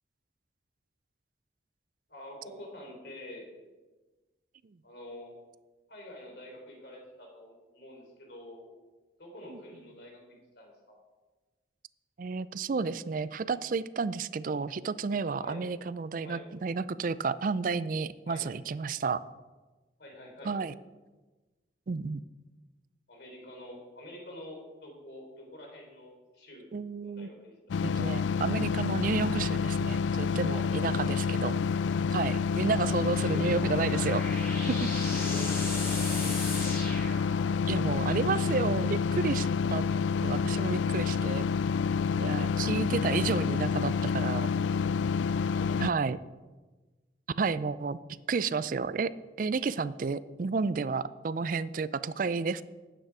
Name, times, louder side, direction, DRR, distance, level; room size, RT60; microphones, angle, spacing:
voice 1, 2.1-3.5 4.8-5.3 5.9-8.7 9.2-11.0 15.4-15.7 16.2-16.5 18.3-18.5 20.0-20.6 23.1-26.7 27.0-27.8 30.6-30.7 32.8-33.5 35.1-36.4 42.3-42.5 45.5-45.9 52.0-52.2, left 1 dB, 65° left, 0 dB, 3.6 m, -47 dB
voice 2, 12.2-19.2 20.4-20.7 21.9-22.2 26.7-27.3 27.8-31.5 32.1-34.2 34.7-34.9 37.7-39.8 40.2-41.5 42.2-44.5 45.8-46.2 47.4-48.0 48.3-49.1 49.4-52.6, right 4 dB, 45° right, 16 dB, 0.4 m, -31 dB
sound 1, 27.7-45.9, left 5 dB, 80° left, 0.3 m, -28 dB
sound 2, 33.4-37.8, left 2 dB, 15° left, 4.3 m, -38 dB
12.5 x 9.1 x 4.8 m, 1.2 s
head